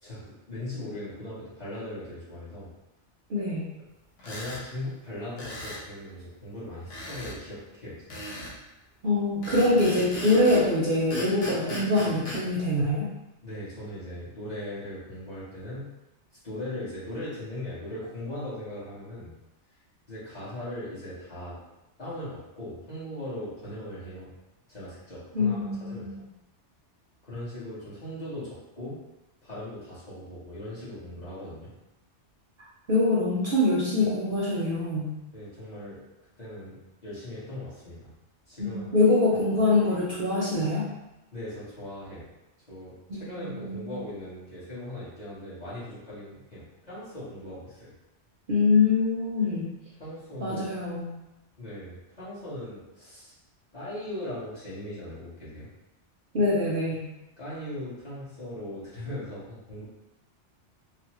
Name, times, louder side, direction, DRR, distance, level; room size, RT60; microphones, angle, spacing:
voice 1, 0.0-2.7 4.2-8.3 13.4-15.9 16.4-19.3 20.1-21.6 22.0-24.3 24.7-26.1 27.2-29.0 29.4-31.7 35.3-36.0 36.4-38.1 38.5-38.9 41.3-42.3 42.7-47.9 50.0-50.6 51.6-53.3 53.7-55.7 57.4-59.9, left 1 dB, 35° left, -10 dB, 1.2 m, -39 dB
voice 2, 3.3-3.7 9.0-13.1 25.3-26.2 32.9-35.1 38.6-40.8 43.1-44.0 48.5-49.7 50.4-51.1 56.3-57.1, left 2 dB, 55° right, -6 dB, 0.7 m, -24 dB
sound 1, 4.2-4.6 5.4-5.9 6.9-7.4 8.1-8.6 9.4-10.7 11.1-12.4, left 1 dB, 90° left, 1.2 m, -37 dB
3.3 x 2.0 x 2.9 m, 0.97 s
omnidirectional pair, 1.2 m